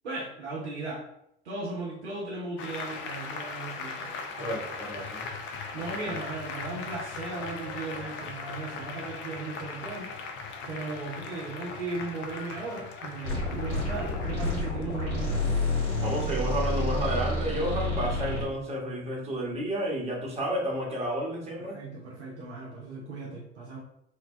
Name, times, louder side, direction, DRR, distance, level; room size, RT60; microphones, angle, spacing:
voice 1, 0.0-1.0 1.4-4.5 5.7-10.1 10.7-15.5 21.6-23.8, right 3 dB, 80° right, -3 dB, 0.6 m, -37 dB
Applause, 2.6-15.6, left 4 dB, 35° left, 0.4 m, -39 dB
voice 2, 4.4-5.2 16.0-21.8, equal, 20° right, -3 dB, 1.0 m, -31 dB
sound 1, 13.2-18.5, left 2 dB, 80° left, 1.3 m, -29 dB
2.8 x 2.1 x 2.4 m, 0.75 s
figure-of-eight pair, 60°, 33 cm